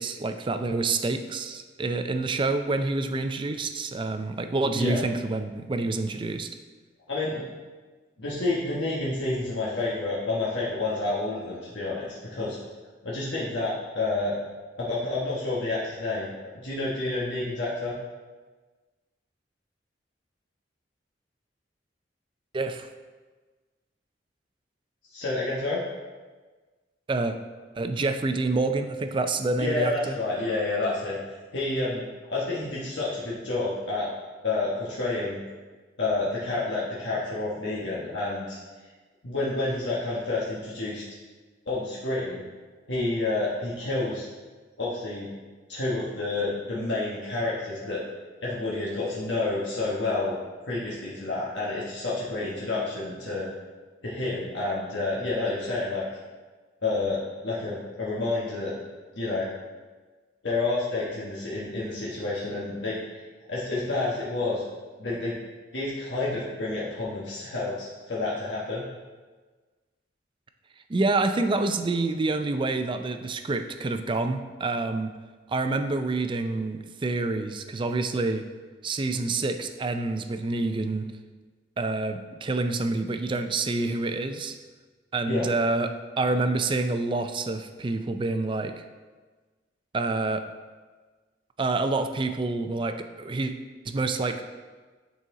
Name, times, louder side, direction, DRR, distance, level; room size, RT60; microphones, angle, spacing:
voice 1, 0.0-6.5 22.5-22.9 27.1-27.4 27.8-30.1 70.9-75.1 75.5-78.5 78.8-81.1 81.8-84.5 85.1-88.8 89.9-90.4 91.6-93.5 93.8-94.4, right 3 dB, 30° right, 8 dB, 0.4 m, -27 dB
voice 2, 4.7-5.0 7.1-7.4 8.2-12.6 13.0-14.4 14.8-16.3 16.5-17.9 25.1-25.8 29.6-31.2 31.5-32.0 32.3-34.1 34.4-35.4 36.0-38.6 39.2-41.0 41.7-42.4 42.9-44.3 44.8-45.3 45.7-48.0 48.4-50.3 50.6-53.5 54.0-56.0 56.8-58.7 59.1-59.5 60.4-63.0 63.5-64.7 65.0-65.3 65.7-68.8 85.3-85.5, left 2 dB, 80° left, -7 dB, 1.2 m, -29 dB
9.4 x 4.1 x 3.7 m, 1.4 s
head